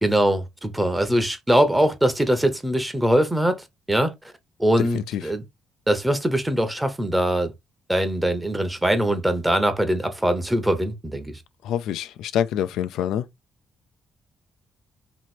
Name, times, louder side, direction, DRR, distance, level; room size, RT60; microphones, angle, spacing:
voice 1, 0.0-4.1 4.6-5.4 5.9-7.5 7.9-11.3, right 1 dB, 10° right, 0.9 m, -22 dB
voice 2, 4.8-5.2 11.6-13.3, left 10 dB, 85° left, 0.4 m, -26 dB
3.0 x 2.9 x 4.3 m
cardioid pair, 90°, 0 cm